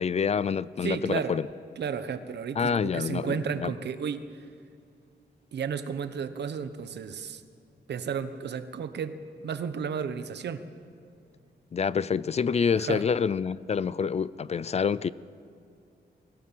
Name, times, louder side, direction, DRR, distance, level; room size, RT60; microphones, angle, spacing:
voice 1, 0.0-1.4 2.6-3.7 11.7-15.1, left 6 dB, 35° left, 0.4 m, -27 dB
voice 2, 0.8-1.4 1.8-4.4 5.5-7.4 7.9-10.6 12.7-13.0, right 7 dB, 75° right, 1.2 m, -33 dB
21.0 x 18.5 x 7.6 m
wide cardioid pair, 135°, 18 cm